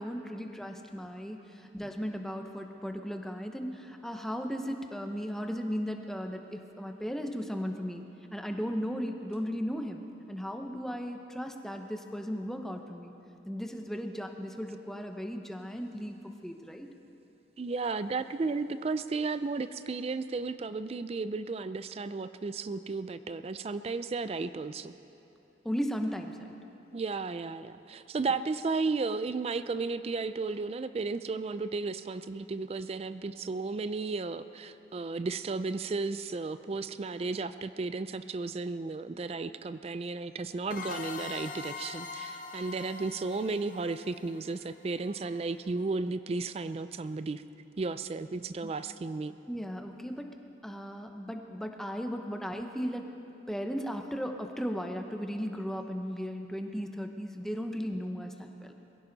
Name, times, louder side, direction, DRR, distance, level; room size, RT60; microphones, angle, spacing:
voice 1, 0.0-8.0 8.3-13.1 13.5-16.9 25.6-26.5 48.6-48.7 49.5-50.3 50.6-53.1 53.5-58.7, equal, ahead, 4 dB, 0.8 m, -36 dB
voice 2, 17.6-24.9 26.9-47.4 47.8-49.3, right 3 dB, 30° right, 12 dB, 0.3 m, -34 dB
sound 1, 40.7-45.2, left 5 dB, 45° left, 0.9 m, -43 dB
22.0 x 16.0 x 4.0 m, 3.0 s
head